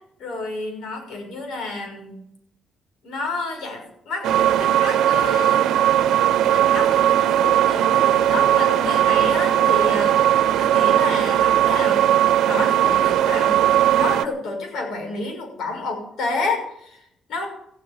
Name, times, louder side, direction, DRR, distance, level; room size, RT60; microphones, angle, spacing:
voice 1, 0.2-2.2 3.0-5.7 6.3-12.2 12.4-13.7 14.0-17.5, left 3 dB, 75° left, 3 dB, 6.3 m, -30 dB
sound 1, 4.2-14.2, right 11 dB, 85° right, 0.9 m, -18 dB
15.0 x 8.8 x 9.2 m, 0.76 s
cardioid pair, 90°, 0 cm